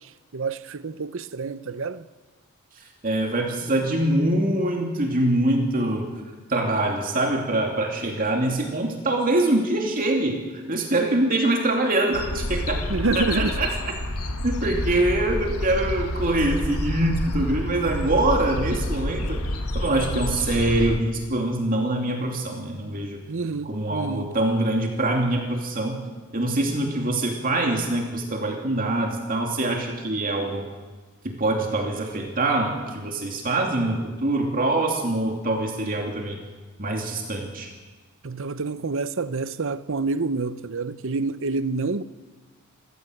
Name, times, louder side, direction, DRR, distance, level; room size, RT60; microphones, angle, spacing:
voice 1, 0.3-2.0 12.9-13.6 23.3-24.3 38.2-42.0, right 3 dB, 60° right, 0.8 m, -27 dB
voice 2, 3.0-6.1 6.5-10.4 10.7-12.8 13.1-13.7 14.4-19.4 19.7-23.2 23.6-26.0 26.3-30.6 31.2-36.4 36.8-37.7, right 1 dB, 40° right, 2.8 m, -24 dB
sound 1, 12.1-21.0, left 1 dB, 85° left, 1.7 m, -28 dB
27.5 x 15.0 x 7.9 m
head